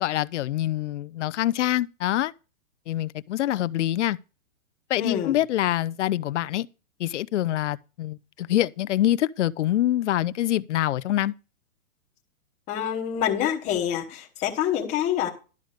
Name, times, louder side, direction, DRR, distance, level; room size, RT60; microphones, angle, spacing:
voice 1, 0.0-2.3 2.9-4.2 4.9-6.7 7.0-11.3, left 13 dB, 60° left, 0.5 m, -25 dB
voice 2, 5.0-5.4 12.7-15.3, left 10 dB, 15° left, 1.1 m, -26 dB
12.0 x 4.9 x 6.5 m
hypercardioid pair, 165°, 41 cm